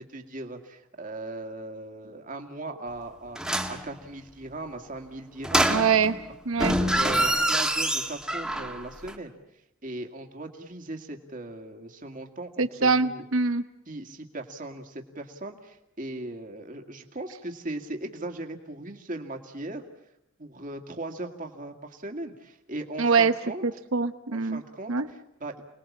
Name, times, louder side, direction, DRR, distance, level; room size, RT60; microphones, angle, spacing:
voice 1, 0.0-5.9 6.8-9.3 9.8-13.2 13.9-19.8 20.4-23.6 24.3-25.6, right 2 dB, 40° right, 4 dB, 2.3 m, -38 dB
sound 1, 3.4-3.8 5.4-6.2 6.5-8.8 9.1-9.2, right 1 dB, 5° right, 1.8 m, -25 dB
voice 2, 5.7-6.1 6.5-6.7 12.6-13.6 23.0-23.3 23.6-24.6 24.9-25.1, right 5 dB, 80° right, 10 dB, 1.0 m, -23 dB
29.5 x 20.5 x 7.4 m, 0.82 s
head